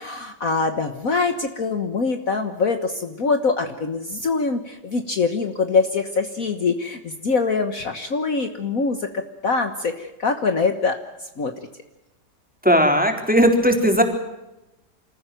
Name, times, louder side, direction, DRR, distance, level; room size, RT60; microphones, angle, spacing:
voice 1, 0.0-10.9 11.2-11.5, left 4 dB, 50° left, 7 dB, 1.7 m, -24 dB
voice 2, 12.6-14.0, equal, 5° right, 3 dB, 3.7 m, -17 dB
27.5 x 15.0 x 9.2 m, 0.97 s
omnidirectional pair, 1.9 m